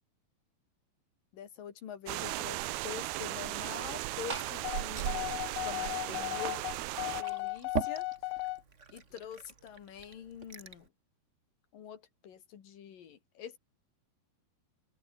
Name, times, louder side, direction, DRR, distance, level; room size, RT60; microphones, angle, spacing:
voice 1, 1.3-5.4 5.6-6.6 7.0-8.1 8.9-10.9 11.7-13.6, left 9 dB, 60° left, 3.7 m, -45 dB
sound 1, 2.1-7.2, right 18 dB, 80° right, 2.6 m, -36 dB
Liquid, 3.8-10.9, right 4 dB, 40° right, 1.0 m, -43 dB
sound 2, 4.6-8.6, left 20 dB, 80° left, 2.2 m, -36 dB
open air
omnidirectional pair, 4.7 m